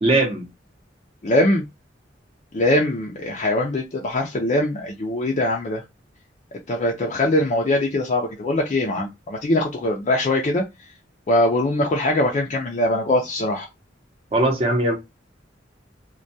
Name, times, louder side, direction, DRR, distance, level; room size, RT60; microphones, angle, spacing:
voice 1, 0.0-0.4 14.3-15.0, right 2 dB, 30° right, 0.7 m, -19 dB
voice 2, 1.2-1.6 2.5-5.8 6.7-10.6 11.3-13.7, left 1 dB, 40° left, 0.4 m, -22 dB
2.2 x 2.2 x 2.6 m
head